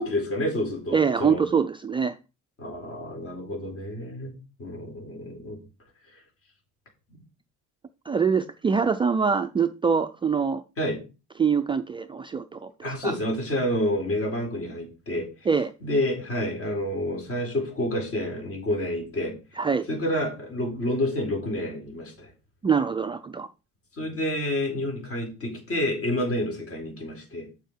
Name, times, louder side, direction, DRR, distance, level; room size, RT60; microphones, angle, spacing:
voice 1, 0.0-1.4 2.6-4.3 4.6-5.6 7.1-7.2 10.8-11.0 12.8-15.3 15.8-19.3 19.9-22.3 24.0-27.5, left 1 dB, 45° left, 4.2 m, -29 dB
voice 2, 0.9-2.2 8.1-10.6 11.4-13.2 15.5-15.7 19.6-19.9 22.6-23.5, right 6 dB, 15° right, 0.3 m, -24 dB
8.0 x 7.0 x 4.5 m
cardioid pair, 140°, 31 cm